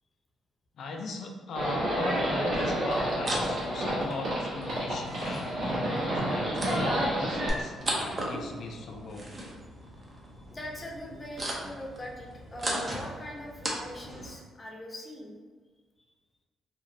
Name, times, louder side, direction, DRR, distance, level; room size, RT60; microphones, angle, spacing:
voice 1, 0.7-9.3, left 3 dB, 65° left, 2 dB, 0.4 m, -39 dB
Livestock farm animals working animals, 1.5-7.5, right 1 dB, 65° right, 1.3 m, -29 dB
sound 1, 2.8-14.3, right 1 dB, 30° right, 0.7 m, -38 dB
voice 2, 10.5-15.3, left 1 dB, 25° left, -2 dB, 0.7 m, -41 dB
3.0 x 2.4 x 2.6 m, 1.5 s
cardioid pair, 90°, 0 cm